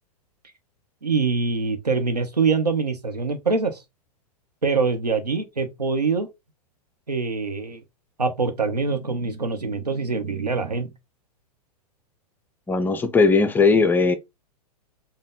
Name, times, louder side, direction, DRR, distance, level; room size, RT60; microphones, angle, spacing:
voice 1, 1.0-3.8 4.6-6.3 7.1-7.8 8.2-10.9, right 4 dB, 80° right, 0.9 m, -24 dB
voice 2, 12.7-14.1, left 4 dB, 10° left, 0.5 m, -18 dB
5.2 x 2.2 x 3.7 m
figure-of-eight pair, 105°, 20 cm